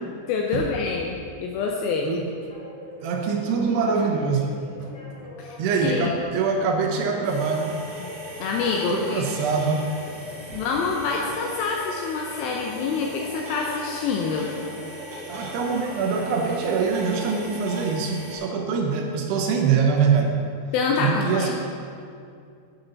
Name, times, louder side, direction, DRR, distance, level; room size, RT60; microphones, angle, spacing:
voice 1, 0.3-2.1 5.4-6.1 8.0-8.1 8.4-9.3 10.5-14.5 20.7-21.5, left 5 dB, 80° left, 0 dB, 2.1 m, -26 dB
sound 1, 2.5-16.8, equal, 25° left, 2.2 m, -42 dB
voice 2, 3.0-4.6 5.6-7.8 8.9-9.9 10.5-10.6 15.3-20.4 21.0-21.5, right 5 dB, 75° right, 2 dB, 2.8 m, -24 dB
sound 2, 7.2-18.4, equal, 45° right, 2.8 m, -39 dB
11.0 x 9.0 x 4.0 m, 2.4 s
omnidirectional pair, 5.1 m